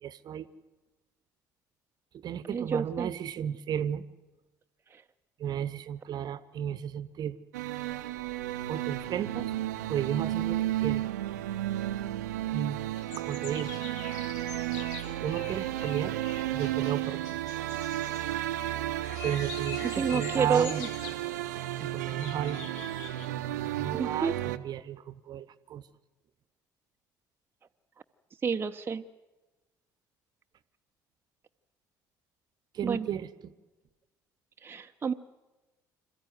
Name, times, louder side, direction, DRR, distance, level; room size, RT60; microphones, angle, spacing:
voice 1, 0.0-0.5 2.1-4.0 5.4-7.4 8.7-9.5 9.9-11.0 12.5-12.8 13.2-13.7 15.1-16.1 16.5-17.2 19.2-20.8 21.8-22.6 23.8-25.8 32.7-33.5, right 9 dB, 45° right, 15 dB, 1.0 m, -34 dB
voice 2, 2.5-3.1 4.9-5.0 19.8-20.9 23.9-24.3 28.4-29.0 32.8-33.1 34.6-35.1, right 6 dB, 25° right, 6 dB, 0.8 m, -29 dB
sound 1, 7.5-24.6, right 14 dB, 70° right, 0.8 m, -33 dB
sound 2, 13.0-23.3, left 7 dB, 70° left, 1.5 m, -45 dB
26.0 x 14.5 x 9.4 m, 1.2 s
figure-of-eight pair, 55°, 9 cm